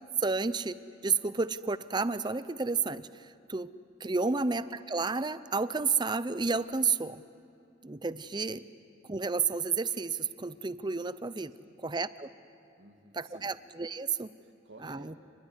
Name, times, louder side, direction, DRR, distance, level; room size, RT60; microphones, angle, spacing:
voice 1, 0.2-0.7 1.0-3.7 4.0-7.2 7.8-8.6 9.0-11.5 11.8-12.3 13.1-14.3 14.8-15.1, right 4 dB, 25° right, 15 dB, 0.6 m, -31 dB
voice 2, 12.8-13.5 14.4-15.2, right 1 dB, 75° right, 3 dB, 2.0 m, -55 dB
28.5 x 21.0 x 9.6 m, 2.6 s
head